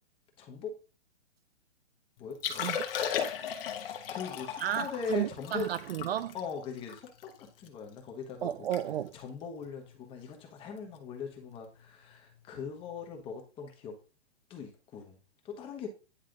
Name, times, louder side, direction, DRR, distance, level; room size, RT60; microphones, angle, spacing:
voice 1, 0.4-0.7 2.2-2.8 3.8-5.7 6.3-8.7 9.1-14.0 14.5-15.2 15.4-15.9, left 5 dB, 15° left, 1.2 m, -40 dB
Liquid, 2.3-7.7 8.1-8.2 8.5-8.8 9.1-9.3 9.9-10.2 11.6-11.7, left 8 dB, 55° left, 1.2 m, -36 dB
voice 2, 4.6-6.3 8.4-9.1, right 11 dB, 60° right, 0.5 m, -33 dB
9.8 x 3.3 x 3.8 m
hypercardioid pair, 155°, 34 cm